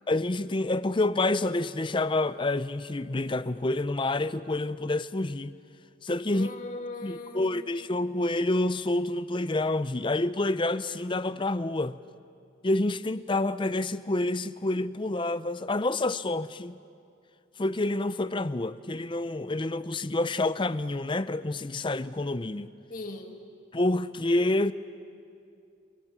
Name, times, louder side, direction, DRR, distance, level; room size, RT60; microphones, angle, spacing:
voice 1, 0.1-5.5 6.0-6.5 7.0-12.0 12.6-16.8 17.6-22.7 23.7-24.7, left 2 dB, 25° left, 0.5 m, -28 dB
voice 2, 6.3-7.8 22.9-23.4, left 2 dB, 40° left, 2.0 m, -39 dB
30.0 x 27.5 x 6.1 m
head